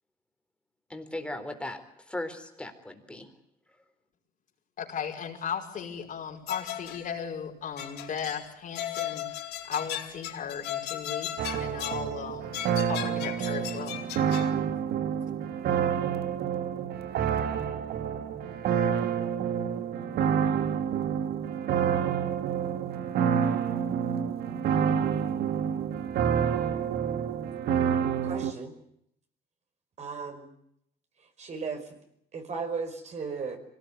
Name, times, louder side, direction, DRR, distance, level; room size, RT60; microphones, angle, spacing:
voice 1, 0.9-3.3, left 1 dB, 5° left, 5 dB, 4.0 m, -38 dB
voice 2, 4.8-12.6 12.9-13.9, left 7 dB, 50° left, 2 dB, 5.4 m, -36 dB
sound 1, 6.5-7.1 7.8-8.5 8.7-12.1 12.5-14.5, left 12 dB, 80° left, 2.7 m, -36 dB
sound 2, 11.4-28.5, right 8 dB, 70° right, 1.8 m, -28 dB
voice 3, 28.2-28.8 30.0-30.5 31.4-31.9 32.3-33.6, right 5 dB, 40° right, 6 dB, 5.3 m, -35 dB
24.5 x 18.5 x 9.6 m, 0.74 s
cardioid pair, 110°, 17 cm